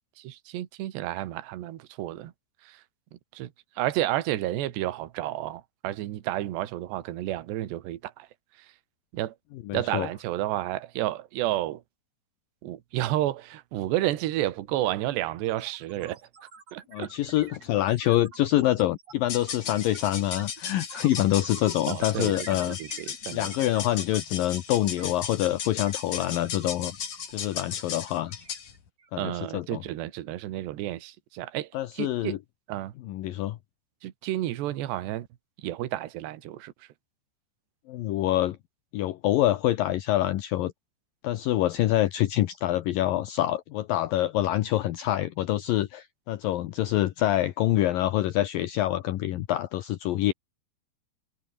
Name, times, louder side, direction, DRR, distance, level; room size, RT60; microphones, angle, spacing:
voice 1, 0.2-2.3 2.6-2.8 3.3-3.5 3.8-8.3 9.1-9.4 9.7-11.8 12.6-16.2 16.7-17.1 21.9-23.7 29.2-31.7 32.0-32.4 32.7-32.9 34.0-35.3 35.6-36.7, right 14 dB, 70° right, 3.6 m, -31 dB
voice 2, 9.7-10.1 16.9-22.8 23.3-27.0 27.3-28.4 29.1-29.8 31.7-32.4 33.0-33.6 37.9-38.6 38.9-40.7 41.2-50.3, left 14 dB, 75° left, 2.1 m, -26 dB
sound 1, 14.5-14.6 14.8-29.2, right 5 dB, 35° right, 4.8 m, -48 dB
sound 2, 19.2-28.7, left 8 dB, 50° left, 4.0 m, -37 dB
omnidirectional pair, 5.4 m